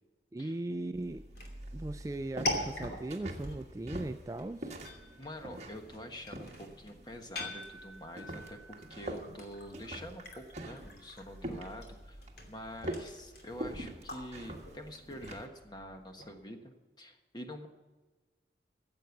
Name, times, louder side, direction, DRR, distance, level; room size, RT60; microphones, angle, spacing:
voice 1, 0.3-1.2 1.7-4.8, right 2 dB, 20° right, 9 dB, 0.3 m, -38 dB
sound 1, 0.9-15.5, right 1 dB, 40° right, 1.5 m, -45 dB
sound 2, 1.3-16.4, left 1 dB, 60° left, 2.7 m, -44 dB
voice 2, 5.2-17.7, equal, 25° left, 5 dB, 1.3 m, -46 dB
14.5 x 7.7 x 7.1 m, 1.2 s
head